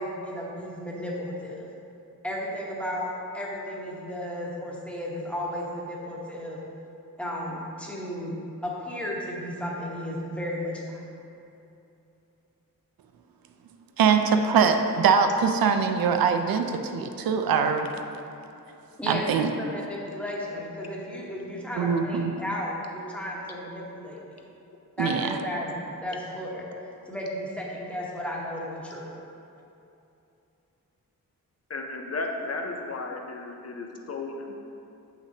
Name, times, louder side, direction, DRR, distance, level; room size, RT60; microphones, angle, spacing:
voice 1, 0.0-1.7 2.2-6.6 7.2-8.4 8.6-11.0 19.0-24.2 25.0-25.7 26.0-26.6 27.1-29.1, left 1 dB, 5° left, -5 dB, 1.1 m, -34 dB
voice 2, 14.0-17.9 19.1-19.5 21.8-22.3 25.0-25.4, right 6 dB, 80° right, 6 dB, 0.5 m, -23 dB
voice 3, 31.7-34.7, left 3 dB, 45° left, 2 dB, 0.6 m, -34 dB
6.7 x 5.9 x 2.8 m, 2.7 s
wide cardioid pair, 105°, 35 cm